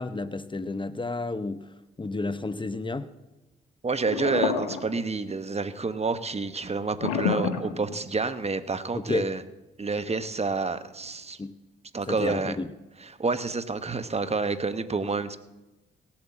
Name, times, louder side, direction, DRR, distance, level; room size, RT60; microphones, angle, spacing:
voice 1, 0.0-1.6 2.0-3.1 8.9-9.3 11.4-11.5 12.1-12.7, left 3 dB, 25° left, 13 dB, 0.8 m, -31 dB
voice 2, 3.8-9.4 9.8-11.4 11.9-12.6 13.0-15.4, right 4 dB, 30° right, 12 dB, 1.0 m, -29 dB
sound 1, 4.0-5.3 7.0-8.3, left 7 dB, 85° left, 1.3 m, -28 dB
17.5 x 7.4 x 7.4 m, 1.0 s
hypercardioid pair, 50°, 21 cm